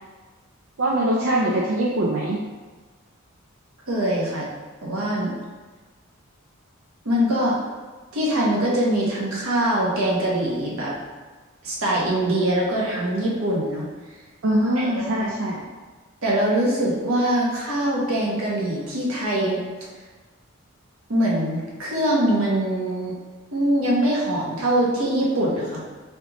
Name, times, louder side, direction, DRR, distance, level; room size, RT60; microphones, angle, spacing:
voice 1, 0.8-2.4 14.4-15.6, right 1 dB, 70° right, -4 dB, 0.5 m, -22 dB
voice 2, 3.9-4.5 4.8-5.3 7.0-7.6 8.1-10.9 11.6-13.9 14.8-15.1 16.2-19.6 21.1-23.1 23.5-25.8, right 1 dB, 85° right, -4 dB, 1.1 m, -23 dB
3.7 x 3.4 x 3.0 m, 1.3 s
head